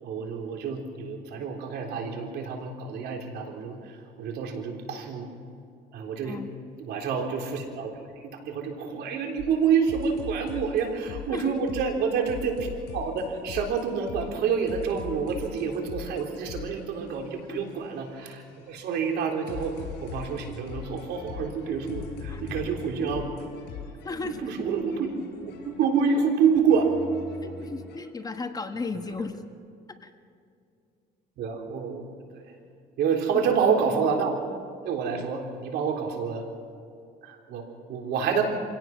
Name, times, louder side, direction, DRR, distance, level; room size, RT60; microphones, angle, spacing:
voice 1, 0.0-5.3 5.9-6.4 6.8-7.9 8.2-23.3 24.1-25.2 25.4-27.0 31.4-32.0 32.3-32.4 33.0-34.4 34.8-36.5 37.2-38.4, right 6 dB, 75° right, 2 dB, 3.7 m, -28 dB
sound 1, 9.4-28.0, left 7 dB, 80° left, 5.8 m, -42 dB
voice 2, 24.0-24.4 27.4-29.4 30.0-30.1 33.3-33.4, left 4 dB, 20° left, 7 dB, 1.4 m, -35 dB
26.0 x 17.0 x 6.0 m, 2.5 s
cardioid pair, 110°, 17 cm